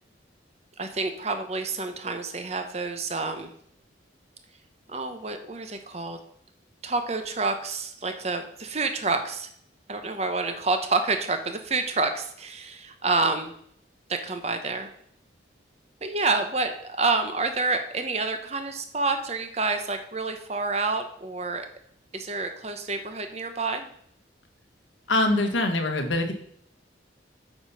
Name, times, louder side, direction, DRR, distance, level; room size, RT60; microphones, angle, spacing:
voice 1, 0.8-3.5 4.9-6.2 6.8-9.5 9.9-13.5 14.1-14.9 16.0-21.7 22.1-23.9, right 3 dB, 35° right, 7 dB, 1.0 m, -28 dB
voice 2, 25.1-26.3, left 2 dB, 85° left, 4 dB, 1.5 m, -23 dB
8.6 x 5.2 x 5.7 m, 0.66 s
head